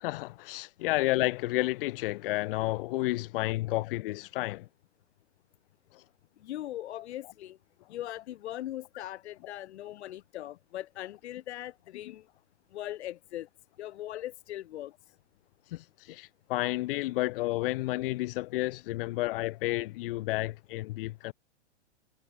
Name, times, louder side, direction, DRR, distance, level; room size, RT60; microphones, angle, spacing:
voice 1, 0.0-4.7 5.9-6.0 15.7-21.3, left 19 dB, 50° left, 0.5 m, -31 dB
voice 2, 6.4-7.6 7.9-12.2 12.7-13.5 13.8-14.9, left 13 dB, 65° left, 1.2 m, -40 dB
hypercardioid pair, 130°, 36 cm